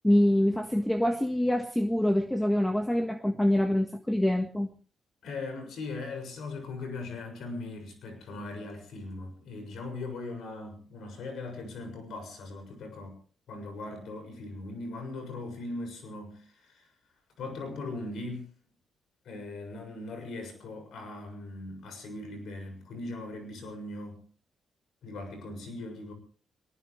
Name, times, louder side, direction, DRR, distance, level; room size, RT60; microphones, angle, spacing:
voice 1, 0.0-4.7, left 1 dB, 5° left, 5 dB, 1.6 m, -25 dB
voice 2, 5.2-13.2 13.5-16.9 17.4-18.5 19.2-24.2 25.0-26.1, left 2 dB, 75° left, 7 dB, 6.7 m, -39 dB
21.0 x 20.0 x 3.3 m, 0.42 s
cardioid pair, 80°, 0 cm